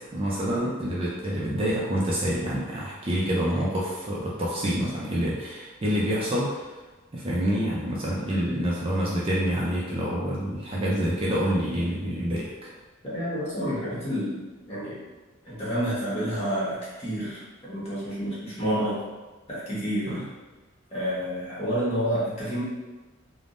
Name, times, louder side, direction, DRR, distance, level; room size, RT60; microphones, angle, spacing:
voice 1, 0.1-6.6 7.1-12.7 20.1-20.2, equal, 25° right, -6 dB, 0.4 m, -27 dB
voice 2, 13.0-14.4 14.7-15.0 15.4-19.0 19.5-20.2 20.9-22.6, equal, 30° left, -9 dB, 1.1 m, -29 dB
3.4 x 2.0 x 2.5 m, 1.2 s
head